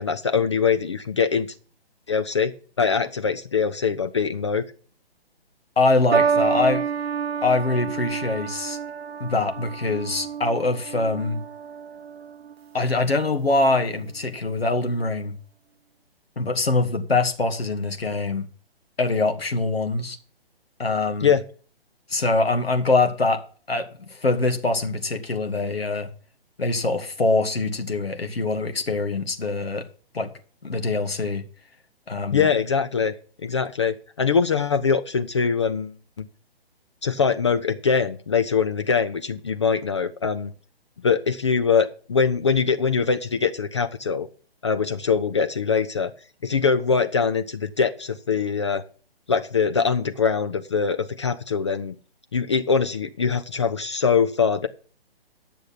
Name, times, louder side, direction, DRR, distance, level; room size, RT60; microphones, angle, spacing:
voice 1, 0.0-1.5 2.1-4.6 21.2-21.4 32.3-33.1 33.4-36.3 37.0-40.5 41.0-44.3 44.6-46.1 46.4-48.8 49.3-52.0 52.3-54.7, left 6 dB, 30° left, 0.4 m, -23 dB
voice 2, 5.8-6.8 7.4-8.8 9.2-11.4 12.7-15.3 16.4-18.5 19.0-20.2 20.8-21.3 22.1-23.4 23.7-26.1 26.6-29.9 30.1-30.3 30.6-31.4 32.1-32.5, left 3 dB, 75° left, 1.8 m, -23 dB
sound 1, 6.1-12.6 13.5-13.9, right 6 dB, 80° right, 0.5 m, -28 dB
10.5 x 6.8 x 5.8 m
figure-of-eight pair, 135°, 31 cm